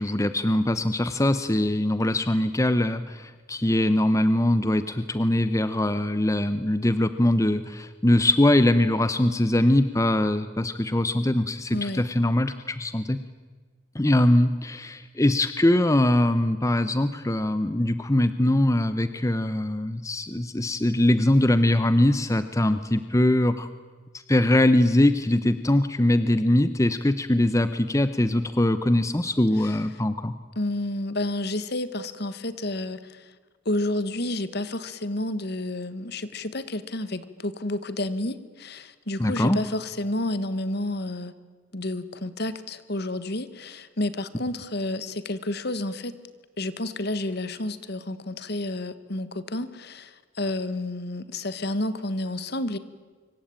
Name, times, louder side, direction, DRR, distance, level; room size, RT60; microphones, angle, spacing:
voice 1, 0.0-13.2 13.9-23.7 24.3-30.3 39.2-39.6, left 1 dB, 15° left, 12 dB, 0.8 m, -22 dB
voice 2, 11.7-12.0 29.6-29.8 30.5-33.3 33.6-41.3 41.7-46.1 46.6-52.8, left 1 dB, 55° left, 13 dB, 1.6 m, -30 dB
25.5 x 24.5 x 8.9 m, 1.4 s
head